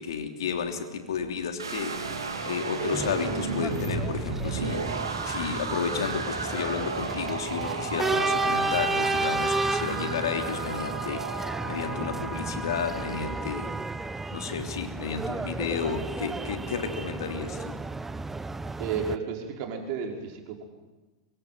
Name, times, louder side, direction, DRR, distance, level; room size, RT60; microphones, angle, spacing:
voice 1, 0.0-1.9 2.4-5.0 5.2-13.7 14.3-17.8, left 6 dB, 70° left, 5 dB, 3.2 m, -32 dB
sound 1, 1.6-13.6, right 4 dB, 85° right, 3.9 m, -34 dB
sound 2, 2.9-19.2, right 3 dB, 10° right, 1.0 m, -32 dB
voice 2, 18.8-20.6, right 6 dB, 50° right, 2 dB, 5.3 m, -32 dB
24.0 x 23.5 x 9.4 m, 1.2 s
hypercardioid pair, 95°, 2 cm